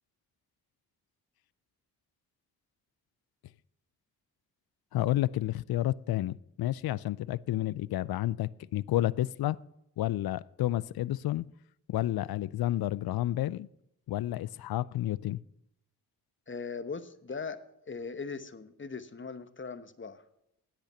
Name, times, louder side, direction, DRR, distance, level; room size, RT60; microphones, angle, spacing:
voice 1, 4.9-9.6 10.0-11.5 11.9-13.7 14.1-15.4, left 14 dB, 65° left, 0.5 m, -30 dB
voice 2, 16.5-20.2, left 5 dB, 30° left, 1.0 m, -40 dB
10.5 x 8.9 x 6.6 m
supercardioid pair, 45°, 40 cm